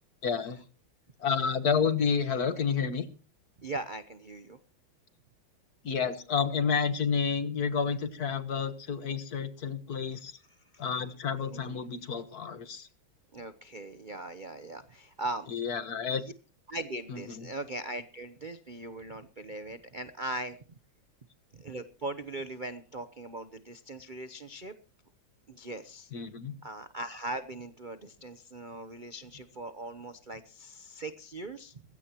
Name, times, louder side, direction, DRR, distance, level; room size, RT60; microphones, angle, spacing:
voice 1, 0.2-0.6 1.2-3.1 5.8-10.3 10.8-12.9 15.5-16.2 17.1-17.5 26.1-26.5, left 6 dB, 50° left, 11 dB, 1.7 m, -30 dB
voice 2, 3.6-4.6 10.7-10.8 11.5-11.6 13.3-15.5 16.1-16.3 16.7-20.6 21.5-24.7 25.5-26.1 26.6-31.8, right 2 dB, 55° right, 11 dB, 0.5 m, -40 dB
21.0 x 16.0 x 3.0 m, 0.36 s
omnidirectional pair, 2.3 m